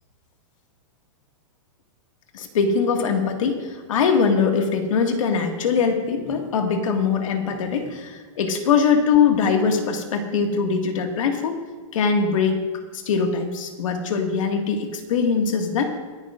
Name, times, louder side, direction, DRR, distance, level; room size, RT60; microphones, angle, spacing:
voice 1, 2.3-11.6 11.9-12.6 12.9-15.9, left 5 dB, 90° left, 3 dB, 2.0 m, -22 dB
23.0 x 10.5 x 2.5 m, 1.5 s
supercardioid pair, 180°, 16 cm